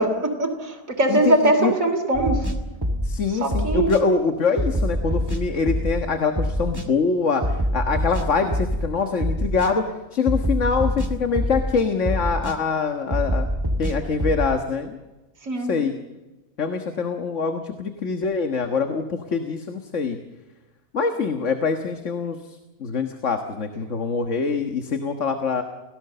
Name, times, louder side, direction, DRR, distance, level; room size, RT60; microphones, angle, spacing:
voice 1, 0.0-2.5 3.4-3.9 15.4-15.7, right 1 dB, 80° right, 3 dB, 3.4 m, -21 dB
voice 2, 1.1-1.7 3.0-9.8 10.1-13.5 13.8-15.0 15.7-15.9 16.6-20.2 20.9-25.6, left 5 dB, 65° left, 6 dB, 1.8 m, -24 dB
sound 1, 2.1-3.2 3.5-4.0 4.6-6.0 6.4-6.9 7.4-8.9 9.2-9.7 10.3-11.7 12.0-12.6 13.1-14.5, equal, 15° right, 2.3 m, -25 dB
30.0 x 17.5 x 6.8 m, 1.1 s
omnidirectional pair, 1.4 m